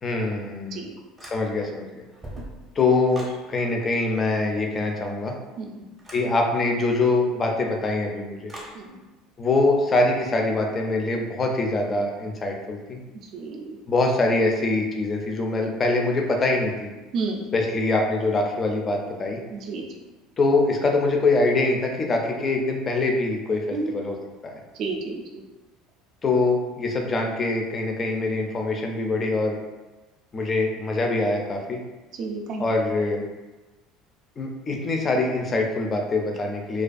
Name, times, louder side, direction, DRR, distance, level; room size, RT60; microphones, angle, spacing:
voice 1, 0.0-0.8 1.2-1.9 2.8-5.4 6.1-8.5 9.4-13.0 13.9-16.9 17.5-19.4 20.4-24.2 24.4-24.6 26.2-29.6 30.3-31.8 32.6-33.2 34.4-36.8, left 2 dB, 25° left, 2 dB, 0.4 m, -24 dB
sound 1, 1.2-1.7 2.1-3.4 6.0-6.3 8.5-8.8, right 1 dB, 15° right, 0.7 m, -41 dB
voice 2, 13.3-13.8 17.1-17.5 19.5-19.8 23.7-24.0 24.8-25.4 32.2-32.6, right 3 dB, 45° right, 1 dB, 0.3 m, -31 dB
2.3 x 2.3 x 2.5 m, 1.1 s
cardioid pair, 145°, 0 cm